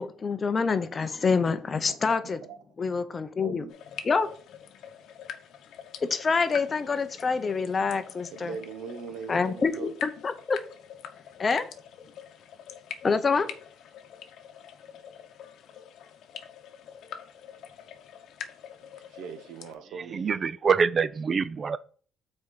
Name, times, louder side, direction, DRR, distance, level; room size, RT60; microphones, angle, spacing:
voice 1, 0.0-2.4 2.8-3.7 4.0-4.3 6.0-8.6 9.3-10.6 11.4-11.6 13.0-13.5, left 5 dB, 25° left, 0.6 m, -26 dB
voice 2, 2.0-2.4 3.4-3.7 8.3-9.9 19.0-20.7, right 6 dB, 80° right, 1.0 m, -41 dB
sound 1, 3.7-19.7, left 8 dB, 65° left, 0.9 m, -45 dB
voice 3, 20.1-21.8, right 5 dB, 30° right, 0.4 m, -25 dB
6.2 x 4.4 x 5.4 m
cardioid pair, 155°, 0 cm